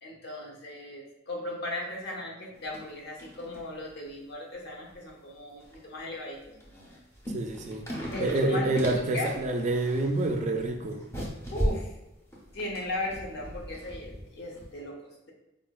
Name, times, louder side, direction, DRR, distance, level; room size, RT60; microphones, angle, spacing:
voice 1, 0.0-6.5 8.1-8.8 9.1-9.3 11.5-11.9 12.5-15.3, left 1 dB, 55° left, -2 dB, 0.6 m, -37 dB
sound 1, 2.5-2.9 3.2-3.6 4.0-4.1 4.9-5.0 5.6-5.9 6.4-14.2 14.5-14.7, equal, 15° left, 0.5 m, -37 dB
voice 2, 7.3-7.9 8.2-11.0, right 2 dB, 35° right, 4 dB, 0.3 m, -27 dB
3.6 x 2.0 x 2.2 m, 0.94 s
head